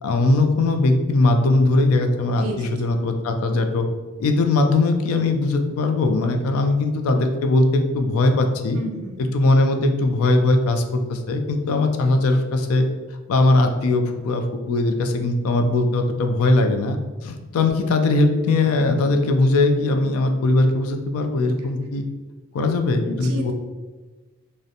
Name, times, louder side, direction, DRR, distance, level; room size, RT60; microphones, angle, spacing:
voice 1, 0.0-3.9 4.2-8.8 9.3-12.9 13.3-22.0 22.5-23.5, left 2 dB, 70° left, 6 dB, 0.3 m, -20 dB
voice 2, 2.3-2.7 8.7-9.3 23.1-23.5, right 1 dB, 75° right, 2 dB, 0.5 m, -31 dB
2.5 x 2.1 x 2.7 m, 1.3 s
head